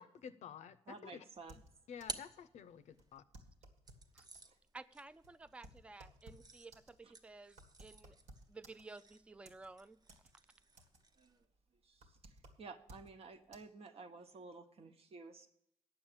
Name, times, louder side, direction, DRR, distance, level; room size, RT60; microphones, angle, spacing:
voice 1, 0.0-1.2 1.9-3.2, left 8 dB, 80° left, 13 dB, 0.6 m, -51 dB
voice 2, 0.9-1.6 4.5-4.6 11.2-11.4 11.8-12.3 12.6-15.5, right 4 dB, 60° right, 7 dB, 1.1 m, -53 dB
sound 1, 1.4-3.2 3.9-11.5, right 3 dB, 35° right, 1.0 m, -54 dB
sound 2, 1.4-2.4 2.6-2.7 3.0-4.5 5.0-9.1 9.5-10.3 10.6-11.2 11.5-13.2 13.5-13.6, right 1 dB, 85° right, 1.8 m, -59 dB
voice 3, 4.7-8.2 8.5-10.0, right 3 dB, 10° right, 13 dB, 0.4 m, -54 dB
8.9 x 7.1 x 8.7 m, 0.78 s
cardioid pair, 90°, 12 cm